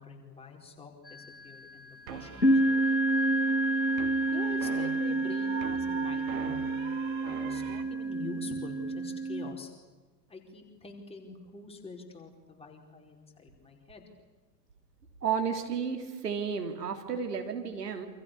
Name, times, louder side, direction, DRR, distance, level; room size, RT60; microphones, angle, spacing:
voice 1, 0.0-2.6 4.3-6.6 7.2-9.7 10.3-14.0, left 4 dB, 10° left, 1 dB, 5.1 m, -45 dB
sound 1, 1.1-1.6 2.4-9.5, right 2 dB, 90° left, 1.7 m, -29 dB
sound 2, 2.1-7.8, right 9 dB, 55° right, 2.6 m, -42 dB
voice 2, 15.2-18.1, right 6 dB, 70° right, 5 dB, 3.5 m, -32 dB
28.5 x 27.0 x 7.1 m, 1.3 s
figure-of-eight pair, 90°, 49 cm